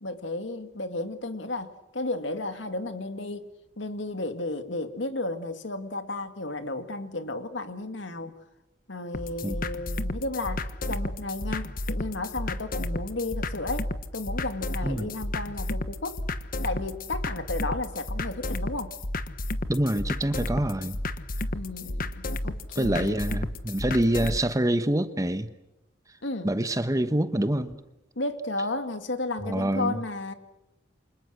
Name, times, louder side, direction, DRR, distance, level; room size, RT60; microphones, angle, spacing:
voice 1, 0.0-3.5 3.8-8.3 8.9-16.2 16.6-18.9 21.5-23.2 26.2-26.5 28.2-30.3, left 2 dB, 70° left, 2.1 m, -33 dB
sound 1, 9.1-24.4, left 1 dB, 50° left, 1.3 m, -32 dB
voice 2, 19.7-21.0 22.7-25.5 26.4-27.8 29.4-30.0, right 1 dB, 20° right, 1.1 m, -26 dB
29.0 x 26.0 x 6.5 m
head